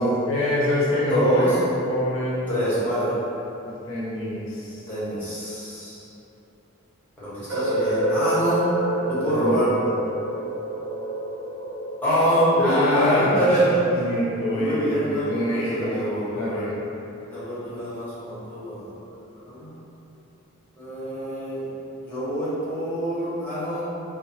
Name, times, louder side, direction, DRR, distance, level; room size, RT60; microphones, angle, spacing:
voice 1, 0.0-1.5 1.8-2.6 3.6-4.8 9.2-9.7 12.6-13.5 13.9-16.0 16.3-16.7, left 1 dB, 70° left, -8 dB, 0.6 m, -26 dB
voice 2, 1.1-1.5 2.5-3.1 4.9-6.1 7.2-8.6 9.0-9.7 12.0-14.0 14.5-16.6 17.3-18.9 19.4-19.7 20.8-21.6 22.0-23.8, equal, 10° left, -12 dB, 0.9 m, -25 dB
sound 1, 7.5-13.4, right 1 dB, 65° right, 0.5 m, -28 dB
3.0 x 2.0 x 2.6 m, 2.9 s
head